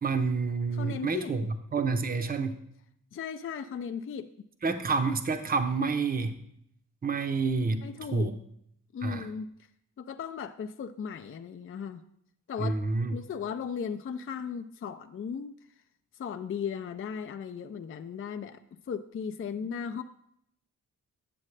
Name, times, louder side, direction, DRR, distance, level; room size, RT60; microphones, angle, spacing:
voice 1, 0.0-1.4 1.7-2.6 4.6-6.3 7.0-7.8 8.1-8.3 9.0-9.3 12.6-13.1, right 4 dB, 25° right, 7 dB, 0.7 m, -28 dB
voice 2, 0.7-1.5 3.1-4.3 7.8-8.4 8.9-9.5 10.0-12.0 12.5-12.8 13.1-15.5 16.2-18.6 18.9-20.0, left 7 dB, 40° left, 8 dB, 0.4 m, -36 dB
8.6 x 7.3 x 3.3 m, 0.73 s
cardioid pair, 65°, 33 cm